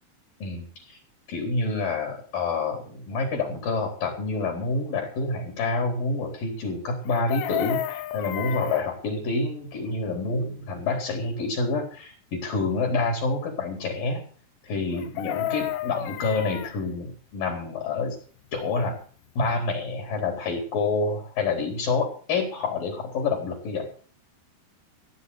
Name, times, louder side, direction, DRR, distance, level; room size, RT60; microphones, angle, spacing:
voice 1, 0.4-1.0 1.3-14.2 14.6-18.2 18.5-19.0 19.4-23.9, left 3 dB, 60° left, 3 dB, 5.5 m, -28 dB
Chicken rooster, 7.0-8.9 14.9-16.8 19.0-19.1 19.4-19.6, left 13 dB, 75° left, 2.1 m, -31 dB
16.5 x 10.0 x 7.1 m, 0.43 s
omnidirectional pair, 4.6 m